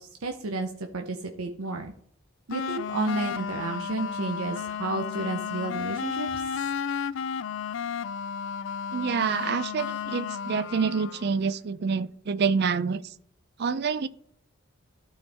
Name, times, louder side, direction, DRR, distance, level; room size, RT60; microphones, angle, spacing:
voice 1, 0.0-1.9 2.5-6.4, right 2 dB, 80° right, 5 dB, 0.7 m, -32 dB
sound 1, 2.5-11.3, left 7 dB, 55° left, 0.3 m, -33 dB
voice 2, 8.9-13.1 13.6-14.1, right 5 dB, 50° right, 16 dB, 0.4 m, -27 dB
12.5 x 4.5 x 3.4 m, 0.68 s
head